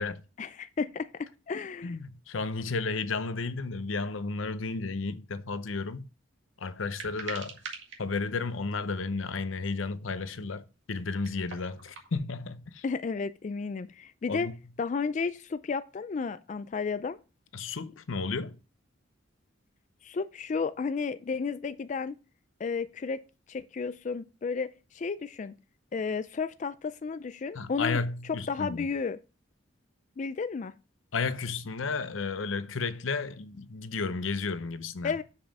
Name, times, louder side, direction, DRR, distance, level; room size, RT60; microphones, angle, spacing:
voice 1, 0.4-2.0 12.8-14.5 14.8-17.2 20.0-22.2 22.6-23.2 23.5-25.5 25.9-28.0 28.3-29.2 30.2-30.7 35.0-35.2, left 5 dB, 40° left, 0.3 m, -32 dB
voice 2, 1.8-6.0 6.6-7.6 8.0-12.8 14.3-14.5 17.5-18.6 27.5-28.9 31.1-35.2, left 4 dB, 85° left, 0.7 m, -33 dB
sound 1, 6.8-8.0 8.9-9.0 11.0-12.2, right 5 dB, 70° right, 1.9 m, -42 dB
7.0 x 5.6 x 5.3 m
head